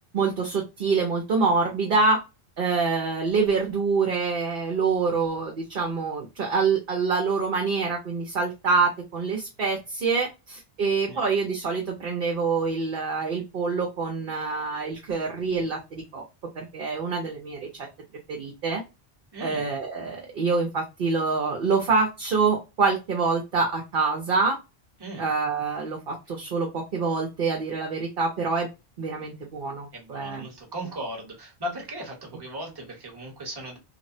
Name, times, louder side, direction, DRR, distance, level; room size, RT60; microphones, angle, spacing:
voice 1, 0.1-2.2 2.6-16.2 16.5-17.7 18.3-18.8 19.4-24.6 25.2-28.7 29.0-30.5, right 4 dB, 60° right, 1 dB, 0.8 m, -26 dB
voice 2, 19.3-19.7 25.0-25.3 29.9-33.8, right 1 dB, 25° right, 0 dB, 1.0 m, -37 dB
3.1 x 2.1 x 2.6 m, 0.26 s
omnidirectional pair, 1.0 m